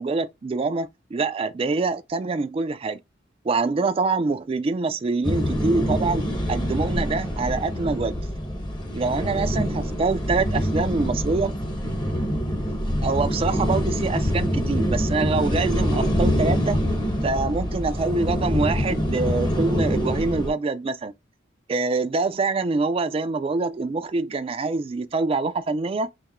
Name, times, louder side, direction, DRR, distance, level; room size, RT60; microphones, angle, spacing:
voice 1, 0.0-3.0 3.4-8.1 8.9-11.5 13.0-16.8 17.2-21.1 21.7-26.1, right 3 dB, 30° right, 0.3 m, -25 dB
sound 1, 5.2-20.5, equal, 25° left, 0.7 m, -25 dB
4.2 x 2.0 x 3.6 m
head